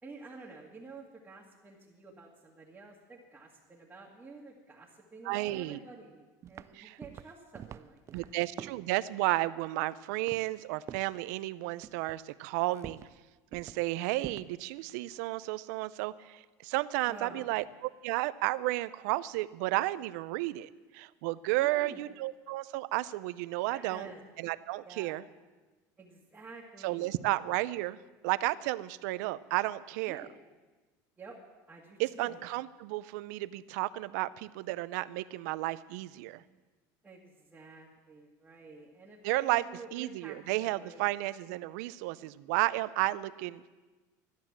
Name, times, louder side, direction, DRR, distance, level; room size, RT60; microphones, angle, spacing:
voice 1, 0.0-8.3 17.1-17.6 21.4-22.0 23.7-24.2 24.8-25.2 26.0-27.2 30.1-30.3 31.2-31.4 31.7-32.4 37.0-41.0, right 3 dB, 15° right, -4 dB, 1.9 m, -50 dB
voice 2, 5.2-5.8 6.7-7.0 8.1-13.0 13.5-24.1 24.4-25.2 26.8-28.0 28.2-30.3 32.0-36.4 39.2-39.6 39.9-43.7, right 18 dB, 80° right, 16 dB, 0.5 m, -32 dB
sound 1, 6.4-6.7 7.0-8.9 10.3-10.6 10.9-11.2 11.8-12.2 12.7-13.2 13.5-13.8 14.2-14.5, right 10 dB, 30° right, 0.4 m, -46 dB
13.0 x 10.5 x 7.4 m, 1.3 s
supercardioid pair, 130°, 9 cm